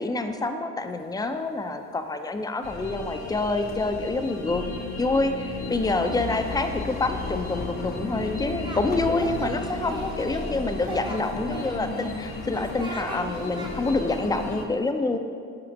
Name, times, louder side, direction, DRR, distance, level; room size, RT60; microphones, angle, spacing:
voice 1, 0.0-4.6 5.0-15.2, left 2 dB, 15° left, 7 dB, 0.4 m, -27 dB
sound 1, 0.8-3.3 3.6-4.0 4.3-14.7, left 2 dB, 30° left, 0.8 m, -43 dB
sound 2, 2.6-14.6, left 3 dB, 55° left, 1.1 m, -35 dB
Singing, 8.1-8.8 9.1-10.5 10.8-12.1 12.5-13.2 13.5-13.7, right 2 dB, 15° right, 0.7 m, -38 dB
5.8 x 4.2 x 5.3 m, 2.3 s
cardioid pair, 90°, 30 cm